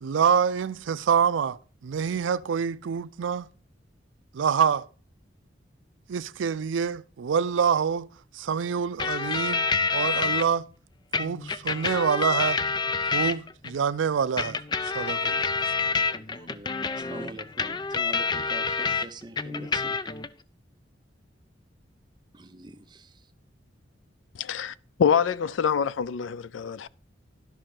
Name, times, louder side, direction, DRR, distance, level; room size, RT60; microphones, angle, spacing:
voice 1, 0.0-3.5 4.3-4.9 6.1-8.1 8.3-9.7 9.9-10.7 11.2-12.6 13.1-14.6 14.9-15.5, right 7 dB, 85° right, 0.4 m, -26 dB
sound 1, 9.0-10.4 11.1-13.7 14.4-19.1 19.4-20.3, left 4 dB, 25° left, 0.4 m, -27 dB
voice 2, 15.8-20.0 22.3-23.2, right 2 dB, 25° right, 0.7 m, -44 dB
voice 3, 24.3-24.7 25.0-26.9, left 7 dB, 85° left, 0.4 m, -25 dB
11.5 x 5.8 x 5.0 m
head